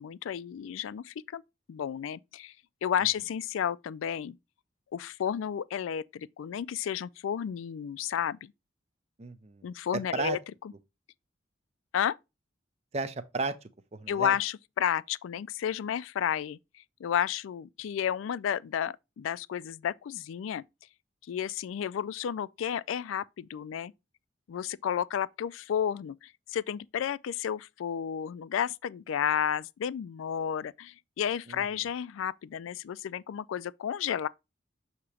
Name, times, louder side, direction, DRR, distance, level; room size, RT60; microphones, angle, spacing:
voice 1, 0.0-1.4 1.7-2.5 2.8-4.3 4.9-8.5 9.6-10.4 11.9-12.1 14.1-16.6 17.0-20.6 21.3-23.9 24.5-34.3, left 9 dB, 85° left, 0.3 m, -32 dB
voice 2, 9.2-9.7 9.9-10.4 12.9-13.6 13.9-14.3 31.5-31.6, right 3 dB, 35° right, 0.5 m, -33 dB
6.8 x 2.9 x 4.8 m
head